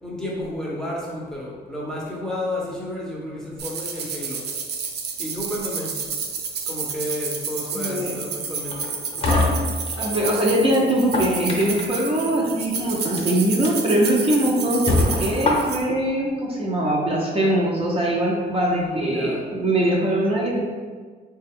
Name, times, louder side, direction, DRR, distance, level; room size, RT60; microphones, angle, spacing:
voice 1, 0.0-4.4 5.2-5.9 6.7-8.9 18.7-19.4, left 1 dB, 5° left, -4 dB, 0.7 m, -31 dB
sound 1, 3.6-15.8, right 5 dB, 70° right, 0.5 m, -31 dB
voice 2, 7.7-8.2 10.0-20.6, right 1 dB, 35° right, -3 dB, 0.7 m, -22 dB
sound 2, 8.7-10.4 10.9-12.0 13.0-13.2 13.6-13.7 14.2-14.3 14.9-16.0, left 2 dB, 35° left, 0.7 m, -23 dB
3.6 x 2.3 x 3.4 m, 1.5 s
cardioid pair, 100°, 18 cm